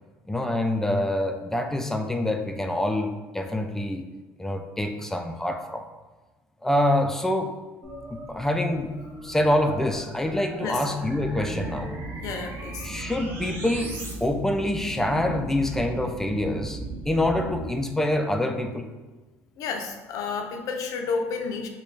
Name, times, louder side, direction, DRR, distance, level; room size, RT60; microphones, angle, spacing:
voice 1, 0.3-4.1 4.4-5.8 6.6-7.5 8.1-8.9 9.2-12.0 12.8-16.8 17.1-18.9, left 1 dB, 5° left, 5 dB, 0.4 m, -26 dB
sound 1, 7.8-14.1, right 1 dB, 40° right, 0.9 m, -41 dB
voice 2, 10.6-10.9 12.2-12.9 19.6-21.7, left 5 dB, 65° left, 4 dB, 0.5 m, -31 dB
sound 2, 11.0-17.6, right 2 dB, 20° right, 1.2 m, -36 dB
3.2 x 2.2 x 3.9 m, 1.2 s
cardioid pair, 100°, 6 cm